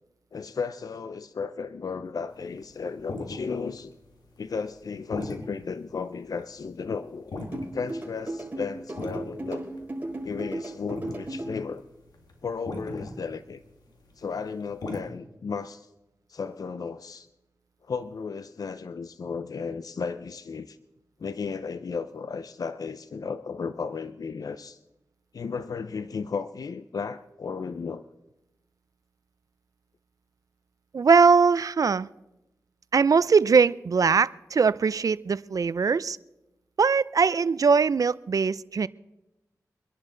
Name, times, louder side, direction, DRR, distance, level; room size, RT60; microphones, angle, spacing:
voice 1, 0.3-3.9 4.4-7.4 7.7-9.6 10.2-11.8 12.4-13.6 14.2-15.9 16.3-17.3 17.8-20.8 21.2-24.8 25.3-28.0, left 5 dB, 65° left, 12 dB, 0.5 m, -34 dB
sound 1, 2.3-6.5 6.7-6.9 7.2-7.9 8.2-8.5 8.9-14.1 14.4-15.0, left 2 dB, 85° left, 2.0 m, -38 dB
sound 2, 7.5-11.5, right 1 dB, 25° right, 5.0 m, -34 dB
voice 2, 30.9-32.1 32.9-36.2 36.8-38.9, right 5 dB, 60° right, 19 dB, 0.4 m, -21 dB
24.5 x 11.0 x 3.8 m, 0.94 s
cardioid pair, 60°, 7 cm